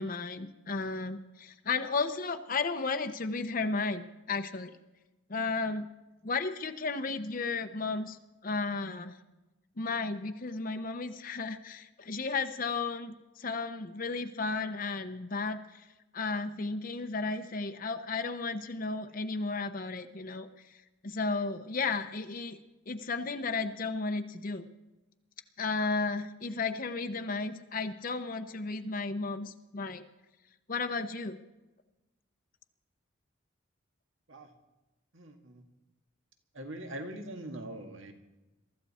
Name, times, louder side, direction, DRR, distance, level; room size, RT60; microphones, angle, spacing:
voice 1, 0.0-4.8 5.3-5.9 6.2-8.2 8.4-9.2 9.8-15.9 16.1-20.5 21.0-22.6 22.9-24.7 25.6-30.0 30.7-31.4, left 4 dB, 40° left, 7 dB, 0.8 m, -34 dB
voice 2, 35.1-35.6 36.5-38.1, right 1 dB, 70° right, 5 dB, 1.8 m, -42 dB
23.0 x 14.0 x 4.3 m, 1.0 s
head